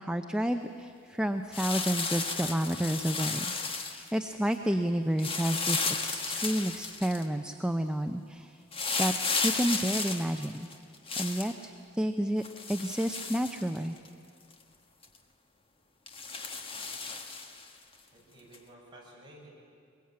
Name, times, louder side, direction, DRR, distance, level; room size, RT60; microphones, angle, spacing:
voice 1, 0.0-8.6 9.0-9.1 9.4-10.7 11.2-11.7 12.0-12.4 12.7-14.0, equal, 5° right, 6 dB, 0.6 m, -30 dB
sound 1, 1.5-4.1 5.2-7.2 8.7-11.5 12.4-14.1 14.5-14.6 15.0-15.2 16.1-17.7 18.5-18.6, left 4 dB, 25° left, 1.5 m, -33 dB
voice 2, 18.1-19.5, right 1 dB, 20° right, -4 dB, 6.6 m, -53 dB
22.5 x 21.5 x 8.7 m, 2.3 s
head